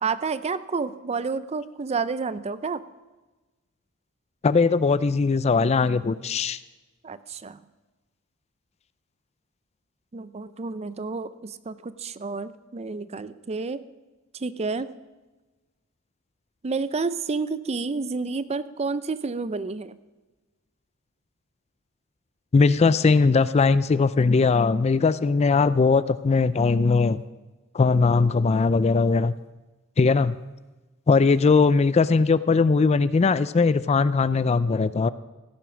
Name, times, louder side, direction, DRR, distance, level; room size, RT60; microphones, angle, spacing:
voice 1, 0.0-2.8 7.0-7.6 10.1-13.8 14.3-14.9 16.6-20.0, right 4 dB, 30° right, 15 dB, 0.5 m, -30 dB
voice 2, 4.4-6.6 22.5-27.2 27.7-29.3 30.0-30.4 31.1-35.1, left 4 dB, 30° left, 16 dB, 0.3 m, -20 dB
15.5 x 9.0 x 6.2 m, 1.2 s
head